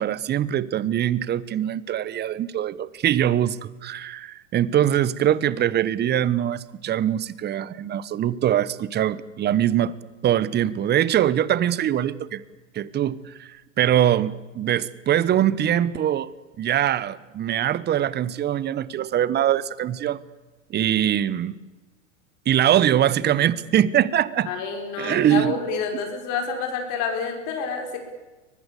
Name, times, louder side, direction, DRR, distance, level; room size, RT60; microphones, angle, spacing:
voice 1, 0.0-10.0 10.2-12.4 12.7-16.3 16.6-20.2 20.7-21.6 22.5-24.5 25.0-25.6, right 11 dB, 25° right, 19 dB, 1.0 m, -22 dB
voice 2, 24.5-28.0, left 5 dB, 50° left, 4 dB, 5.3 m, -28 dB
23.5 x 19.5 x 8.3 m, 1.2 s
hypercardioid pair, 110°, 39 cm